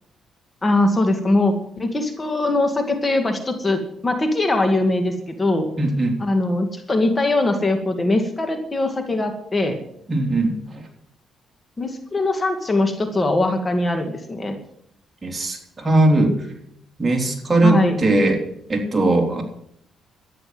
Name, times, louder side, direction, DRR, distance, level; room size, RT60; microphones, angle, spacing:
voice 1, 0.6-5.7 6.2-9.8 11.8-14.6 17.6-18.0, left 2 dB, 25° left, 6 dB, 2.1 m, -21 dB
voice 2, 5.8-6.2 10.1-10.8 15.2-16.4 17.0-18.4 18.7-19.4, right 2 dB, 30° right, 2 dB, 3.6 m, -19 dB
13.0 x 10.0 x 7.9 m, 0.72 s
cardioid pair, 90°, 0 cm